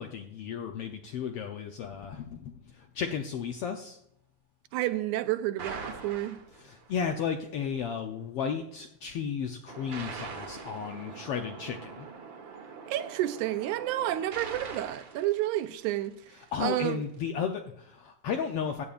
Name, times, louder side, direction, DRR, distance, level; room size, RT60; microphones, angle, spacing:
voice 1, 0.0-4.0 6.6-12.1 16.5-18.8, left 7 dB, 75° left, 1.4 m, -34 dB
voice 2, 4.7-6.4 12.9-16.2 16.6-17.0, right 14 dB, 85° right, 2.1 m, -30 dB
sound 1, 5.6-7.0 9.7-16.2, right 5 dB, 50° right, 1.7 m, -43 dB
15.5 x 9.9 x 2.5 m
omnidirectional pair, 3.4 m